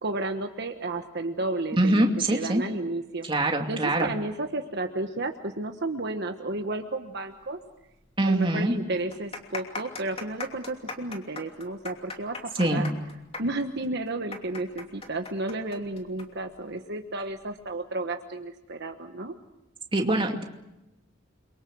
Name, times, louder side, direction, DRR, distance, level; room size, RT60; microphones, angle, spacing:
voice 1, 0.0-3.3 3.7-7.6 8.2-12.9 13.4-19.3, right 2 dB, 55° right, 5 dB, 1.3 m, -32 dB
voice 2, 1.8-2.6 3.2-4.1 8.2-8.7 12.6-12.9 19.9-20.4, right 1 dB, 25° right, 3 dB, 2.5 m, -23 dB
sound 1, 7.9-8.0 8.3-8.4 9.0-16.3 16.5-16.6 17.4-17.7, left 3 dB, 30° left, 2.9 m, -38 dB
29.0 x 23.5 x 6.3 m, 0.93 s
head